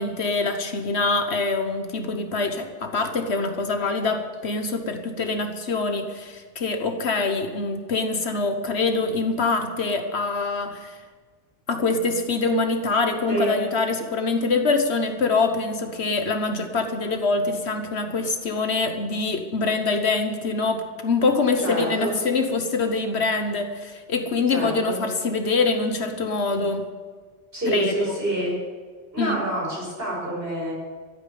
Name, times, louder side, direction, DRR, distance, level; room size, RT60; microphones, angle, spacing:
voice 1, 0.0-11.0 11.7-26.9 27.7-28.2 29.2-29.4, left 3 dB, 65° left, 6 dB, 1.5 m, -24 dB
voice 2, 13.3-13.6 21.6-22.2 24.5-25.0 27.5-28.6 29.1-30.7, right 1 dB, 55° right, -3 dB, 5.9 m, -27 dB
14.0 x 9.1 x 8.4 m, 1.5 s
omnidirectional pair, 1.2 m